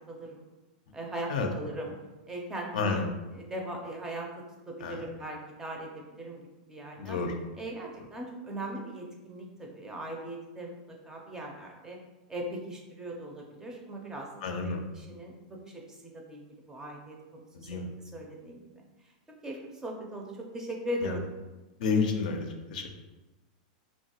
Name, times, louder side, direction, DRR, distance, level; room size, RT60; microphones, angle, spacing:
voice 1, 0.1-0.4 0.9-1.3 1.6-1.9 2.3-3.0 3.4-4.3 4.7-6.4 6.7-7.2 7.6-12.0 12.3-14.3 14.6-16.4 16.7-18.6 19.4-21.3, right 1 dB, 10° right, 0 dB, 0.4 m, -39 dB
voice 2, 2.7-3.0 4.8-5.0 7.0-7.3 14.4-14.8 17.5-17.9 21.0-21.2 21.8-22.9, left 4 dB, 70° left, 4 dB, 0.5 m, -30 dB
2.8 x 2.2 x 2.8 m, 1.1 s
supercardioid pair, 135°, 4 cm